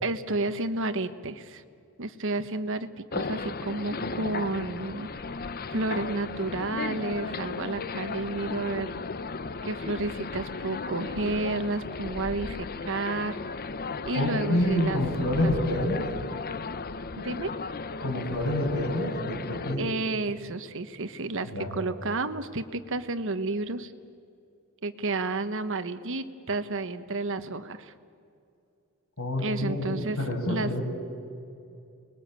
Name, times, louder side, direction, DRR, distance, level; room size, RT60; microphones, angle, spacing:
voice 1, 0.0-1.6 2.0-5.1 5.7-8.9 9.6-13.4 14.0-15.0 15.3-15.5 17.2-17.5 19.8-23.9 24.8-27.9 29.4-30.2 30.5-30.7, right 2 dB, 65° right, 10 dB, 1.3 m, -31 dB
sound 1, 3.1-19.8, left 4 dB, 45° left, 0.8 m, -35 dB
voice 2, 14.1-16.1 18.0-19.9 21.4-21.7 29.2-30.8, left 1 dB, 80° left, 0 dB, 6.7 m, -27 dB
30.0 x 21.0 x 9.0 m, 2.5 s
head